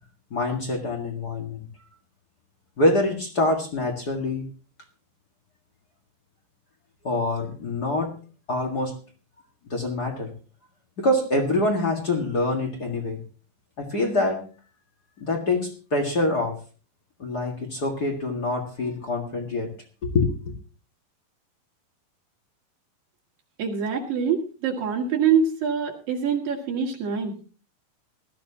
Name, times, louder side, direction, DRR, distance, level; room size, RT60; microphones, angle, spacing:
voice 1, 0.3-1.7 2.8-4.5 7.0-8.1 8.5-8.9 9.7-10.3 11.0-13.2 13.8-14.5 15.2-16.6 17.2-19.7 20.0-20.3, left 2 dB, 40° left, 3 dB, 1.5 m, -25 dB
voice 2, 23.6-27.5, right 6 dB, 65° right, 0 dB, 3.8 m, -25 dB
18.0 x 13.5 x 2.8 m, 0.36 s
omnidirectional pair, 4.4 m